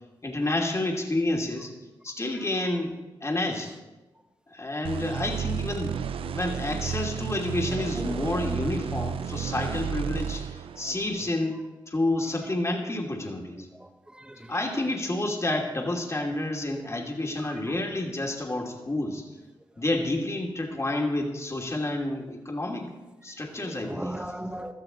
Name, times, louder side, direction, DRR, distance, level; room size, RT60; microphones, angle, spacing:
voice 1, 0.2-1.7 2.0-2.9 3.2-3.7 4.5-11.5 11.9-13.7 14.5-19.2 19.8-22.9 23.2-24.2, left 2 dB, 30° left, 1 dB, 2.6 m, -29 dB
sound 1, 4.8-11.3, right 8 dB, 80° right, 0.5 m, -32 dB
voice 2, 7.9-8.5 10.8-10.9 13.8-14.7 16.7-16.8 17.4-17.8 22.1-22.2 23.6-24.7, right 1 dB, 10° right, 6 dB, 1.5 m, -39 dB
16.0 x 13.0 x 3.9 m, 1.1 s
supercardioid pair, 45°, 9 cm